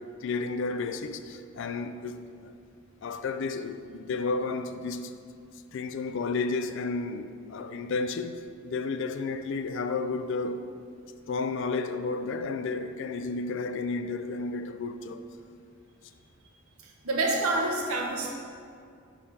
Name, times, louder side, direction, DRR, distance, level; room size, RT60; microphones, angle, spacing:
voice 1, 0.0-2.5 3.0-5.1 5.7-10.7 11.3-15.2, left 4 dB, 55° left, 0.3 m, -32 dB
voice 2, 16.8-18.3, right 2 dB, 80° right, 1.0 m, -28 dB
5.3 x 4.9 x 5.3 m
head